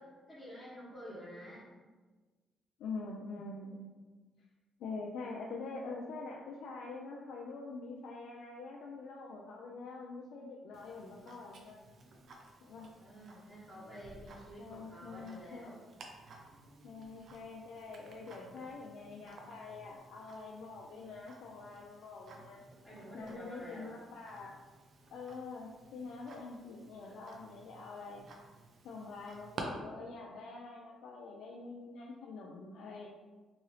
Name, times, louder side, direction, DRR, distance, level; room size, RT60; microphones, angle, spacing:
voice 1, 0.0-1.7 12.7-15.8 22.8-23.9, equal, 5° right, -11 dB, 1.1 m, -50 dB
voice 2, 2.8-4.2 4.8-11.8 12.6-12.9 13.7-15.7 16.8-22.6 23.1-24.6 25.1-28.2 28.8-33.1, left 3 dB, 80° left, -2 dB, 0.3 m, -45 dB
Tick-tock, 10.7-29.6, right 3 dB, 60° right, 0.5 m, -54 dB
2.8 x 2.6 x 3.1 m, 1.3 s
cardioid pair, 90°, 0 cm